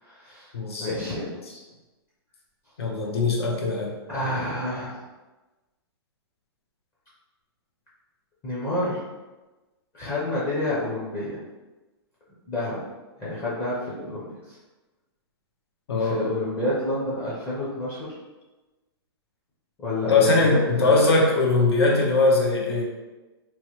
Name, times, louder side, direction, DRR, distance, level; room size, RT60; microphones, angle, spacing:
voice 1, 0.0-0.5 0.8-1.3 4.1-5.0 8.4-9.1 9.9-11.4 12.5-12.8 13.2-14.6 15.9-18.1 19.8-21.2, left 2 dB, 20° left, -8 dB, 0.6 m, -29 dB
voice 2, 0.5-1.1 2.8-3.9 15.9-16.3 20.1-22.8, left 3 dB, 75° left, -1 dB, 0.8 m, -21 dB
3.0 x 2.1 x 2.9 m, 1.2 s
hypercardioid pair, 150°, 14 cm